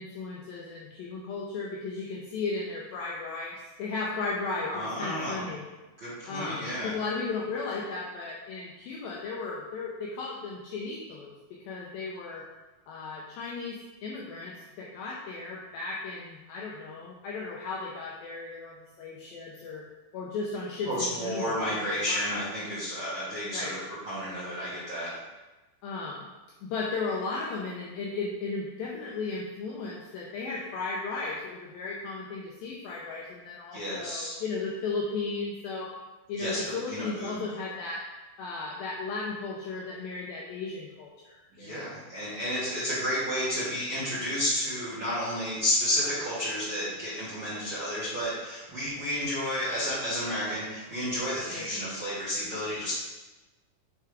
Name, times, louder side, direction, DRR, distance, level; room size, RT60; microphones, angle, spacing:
voice 1, 0.0-5.6 6.3-12.4 12.9-19.8 20.1-22.3 23.5-23.7 25.8-26.2 26.6-35.9 36.3-38.0 38.4-41.9 51.5-51.7, left 3 dB, 80° left, -3 dB, 2.1 m, -35 dB
voice 2, 4.6-5.4 6.0-6.9 20.8-23.8 24.0-25.1 33.7-34.3 36.4-37.4 41.5-52.9, equal, 50° right, -11 dB, 1.6 m, -31 dB
6.8 x 3.5 x 4.7 m, 1.1 s
omnidirectional pair, 4.8 m